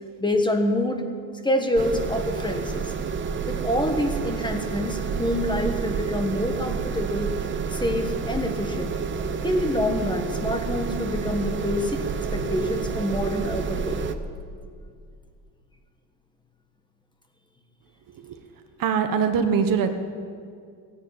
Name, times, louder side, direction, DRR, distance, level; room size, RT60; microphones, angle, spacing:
voice 1, 0.2-1.1 1.4-2.9 3.5-7.3 7.7-8.9 9.4-14.2, left 1 dB, 10° left, 4 dB, 1.3 m, -26 dB
sound 1, 1.8-14.1, right 6 dB, 30° right, 0.8 m, -29 dB
voice 2, 18.8-19.9, right 6 dB, 60° right, 6 dB, 1.3 m, -23 dB
16.0 x 10.0 x 8.8 m, 2.2 s
cardioid pair, 130°, 37 cm